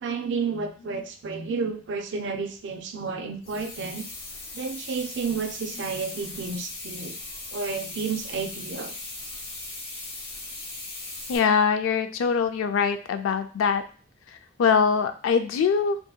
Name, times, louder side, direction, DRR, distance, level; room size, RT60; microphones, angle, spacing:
voice 1, 0.0-4.1 4.5-7.1 7.5-9.0, right 5 dB, 65° right, 5 dB, 0.4 m, -31 dB
sound 1, 3.4-11.4, left 2 dB, 60° left, 0.8 m, -38 dB
voice 2, 11.3-13.8 14.3-16.0, left 6 dB, 90° left, 9 dB, 0.3 m, -23 dB
2.7 x 2.6 x 2.2 m, 0.39 s
head